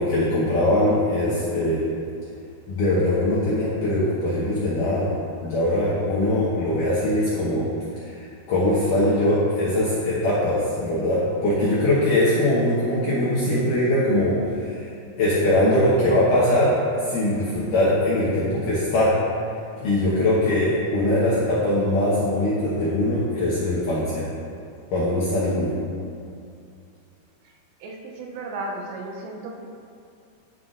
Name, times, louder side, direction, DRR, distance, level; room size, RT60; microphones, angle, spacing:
voice 1, 0.0-1.8 2.7-5.1 5.4-7.6 8.1-8.2 8.5-14.8 15.2-16.7 17.0-19.1 19.8-24.3 24.9-25.7, left 1 dB, 70° left, -10 dB, 2.0 m, -21 dB
voice 2, 27.8-29.7, right 2 dB, 80° right, 0 dB, 2.9 m, -34 dB
11.5 x 5.7 x 2.5 m, 2.5 s
omnidirectional pair, 5.3 m